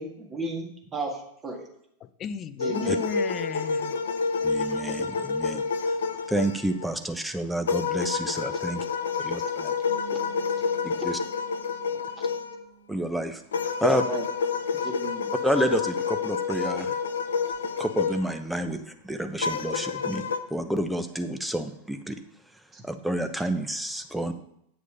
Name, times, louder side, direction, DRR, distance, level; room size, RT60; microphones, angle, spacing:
voice 1, 0.0-1.7 2.6-3.0 11.0-11.1 11.9-12.0 14.1-14.3 14.8-15.3 22.7-22.8, right 2 dB, 20° right, 2 dB, 1.9 m, -34 dB
voice 2, 2.0-4.0, left 7 dB, 30° left, 15 dB, 0.6 m, -35 dB
sound 1, 2.6-6.9 7.7-12.6 13.5-18.3 19.4-20.4, left 5 dB, 65° left, 0.8 m, -28 dB
voice 3, 4.4-5.6 6.3-8.8 9.2-9.7 10.8-11.2 12.9-13.4 13.8-14.0 15.4-16.9 17.8-22.2 22.8-24.3, right 1 dB, 5° right, 7 dB, 0.9 m, -29 dB
sound 2, 9.9-15.5, right 7 dB, 80° right, 1.9 m, -51 dB
9.0 x 6.6 x 5.2 m, 0.74 s
figure-of-eight pair, 90°, 0 cm